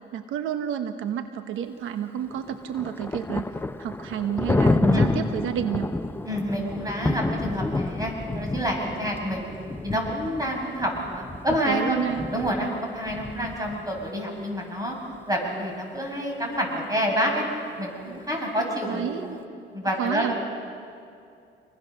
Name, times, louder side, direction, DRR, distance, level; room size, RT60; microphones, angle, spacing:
voice 1, 0.1-3.5 3.8-5.9 11.7-12.2 18.9-19.4 20.0-20.3, right 9 dB, 85° right, 8 dB, 1.0 m, -30 dB
Thunder, 2.3-14.1, left 2 dB, 10° left, 0.7 m, -29 dB
voice 2, 6.3-9.5 9.8-12.0 12.3-15.0 15.3-17.4 17.8-19.4 19.7-20.5, equal, 20° right, 0 dB, 7.2 m, -28 dB
26.5 x 22.0 x 6.5 m, 2.5 s
cardioid pair, 90°, 20 cm